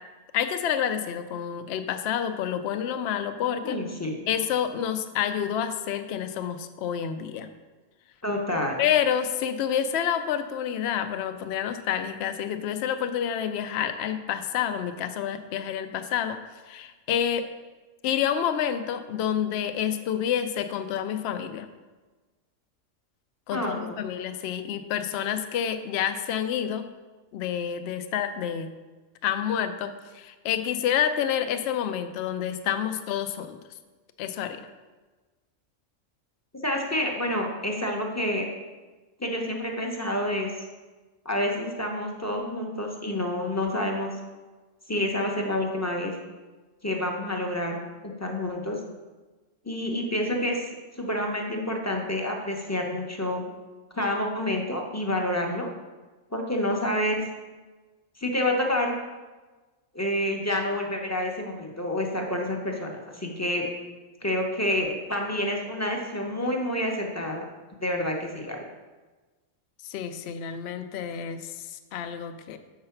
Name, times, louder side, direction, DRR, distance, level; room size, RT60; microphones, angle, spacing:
voice 1, 0.3-3.8 4.3-7.5 8.8-16.4 16.7-17.5 18.0-21.7 23.5-26.9 27.3-28.7 29.2-33.6 34.2-34.6 69.8-72.6, left 9 dB, 65° left, 8 dB, 0.7 m, -28 dB
voice 2, 3.6-4.1 8.2-8.8 23.5-24.0 36.6-38.5 39.2-40.5 41.2-44.1 44.9-46.1 46.8-47.8 48.0-48.8 49.6-50.6 51.0-53.4 53.9-55.7 56.3-57.2 58.2-59.0 59.9-63.7 64.2-67.4 67.8-68.6, left 1 dB, 15° left, 0 dB, 0.7 m, -28 dB
6.6 x 4.8 x 5.7 m, 1.3 s
omnidirectional pair, 1.3 m